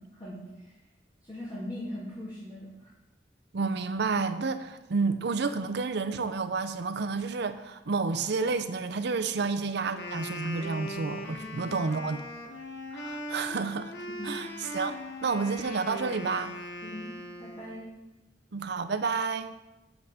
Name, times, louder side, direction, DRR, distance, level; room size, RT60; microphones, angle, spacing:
voice 1, 0.2-0.7 1.3-2.7 9.3-9.5 9.8-9.9 11.4-11.8 14.2-14.4 16.8-17.1 17.4-17.9, left 1 dB, 25° left, -10 dB, 2.7 m, -40 dB
voice 2, 3.5-12.2 12.9-13.9 14.2-16.6 18.5-19.5, right 4 dB, 65° right, 9 dB, 0.6 m, -30 dB
Wind instrument woodwind instrument, 9.9-17.9, left 1 dB, 65° left, 0.9 m, -40 dB
8.1 x 7.9 x 3.5 m, 1.0 s
head